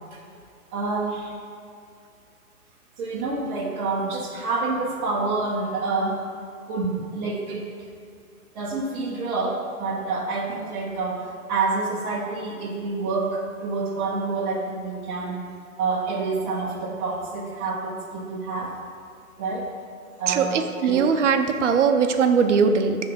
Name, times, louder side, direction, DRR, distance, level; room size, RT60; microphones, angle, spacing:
voice 1, 0.7-1.3 3.0-6.2 6.7-7.7 8.5-15.4 15.8-18.8 19.4-19.7 20.2-21.0, right 3 dB, 20° right, -4 dB, 1.0 m, -28 dB
voice 2, 20.3-23.0, right 6 dB, 55° right, 7 dB, 0.8 m, -20 dB
8.9 x 3.5 x 6.9 m, 2.5 s
hypercardioid pair, 145°, 43 cm